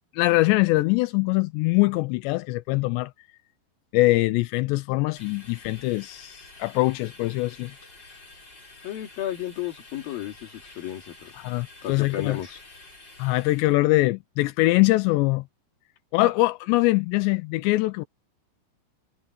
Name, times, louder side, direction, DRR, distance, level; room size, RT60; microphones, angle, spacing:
voice 1, 0.1-3.1 3.9-7.7 11.4-12.4 13.2-15.4 16.1-18.0, left 20 dB, 80° left, 2.6 m, -23 dB
sound 1, 5.1-13.7, left 2 dB, 20° left, 6.2 m, -49 dB
voice 2, 8.8-11.3 11.8-12.6, left 12 dB, 55° left, 3.8 m, -33 dB
omnidirectional pair, 5.5 m